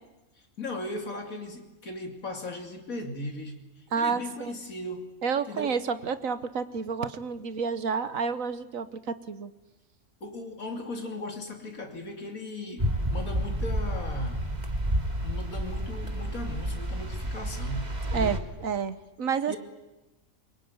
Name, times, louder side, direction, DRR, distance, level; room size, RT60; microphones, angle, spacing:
voice 1, 0.6-3.6 4.0-5.1 5.5-5.9 10.2-14.4 15.2-18.4 19.5-19.6, left 2 dB, 75° left, 4 dB, 3.3 m, -37 dB
voice 2, 3.9-4.5 5.2-9.5 18.1-19.6, right 6 dB, 70° right, 13 dB, 1.5 m, -30 dB
sound 1, 12.8-18.4, equal, 30° right, 2.3 m, -30 dB
24.0 x 23.5 x 9.6 m, 1.0 s
omnidirectional pair, 1.5 m